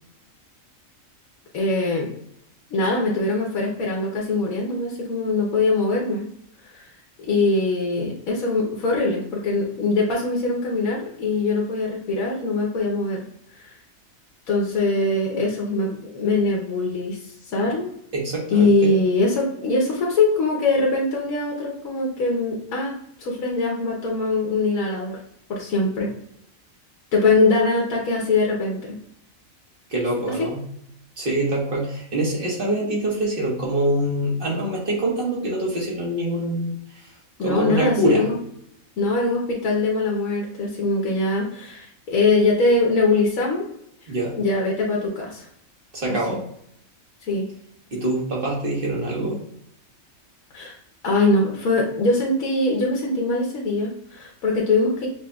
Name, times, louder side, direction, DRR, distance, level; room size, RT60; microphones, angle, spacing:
voice 1, 1.5-2.1 2.7-6.2 6.6-6.9 7.2-13.2 13.5-13.7 14.5-17.9 18.5-22.9 23.2-25.2 25.5-26.1 27.1-29.0 37.4-38.3 39.0-43.6 44.3-45.5 46.3-46.4 47.2-47.5 50.5-50.8 51.0-55.1, left 3 dB, 85° left, -2 dB, 1.3 m, -22 dB
voice 2, 18.1-18.9 29.9-30.6 31.2-38.2 44.1-44.4 45.9-46.4 47.9-49.4, right 1 dB, 45° right, -3 dB, 1.4 m, -25 dB
6.8 x 2.8 x 2.3 m, 0.72 s
omnidirectional pair, 1.4 m